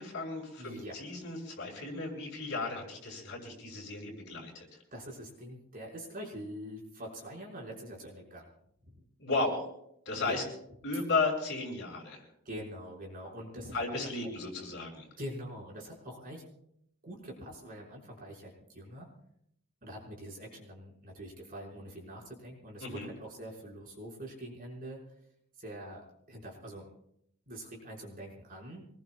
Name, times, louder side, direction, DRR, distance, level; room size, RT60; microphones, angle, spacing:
voice 1, 0.0-4.8 9.2-9.7 10.0-10.4 10.8-12.2 13.7-15.1 22.8-23.1, left 3 dB, 55° left, -1 dB, 6.4 m, -34 dB
voice 2, 0.6-1.0 4.9-8.5 8.8-9.0 10.1-10.4 12.5-13.8 14.0-14.3 15.2-16.5 17.0-19.1 19.8-25.0 25.6-26.9 27.5-28.9, equal, 40° right, -2 dB, 5.2 m, -44 dB
25.5 x 20.5 x 2.4 m, 0.74 s
head